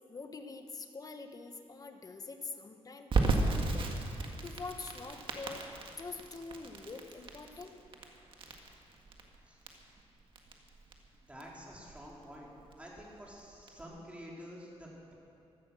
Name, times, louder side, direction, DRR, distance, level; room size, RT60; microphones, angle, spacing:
voice 1, 0.1-5.7 6.0-7.7, left 4 dB, 35° left, 6 dB, 1.2 m, -45 dB
Crackle, 3.1-13.8, right 3 dB, 50° right, 1.8 m, -36 dB
voice 2, 11.3-12.5 12.8-15.1, equal, 10° right, -4 dB, 3.7 m, -49 dB
15.0 x 14.0 x 6.3 m, 2.7 s
cardioid pair, 110°, 11 cm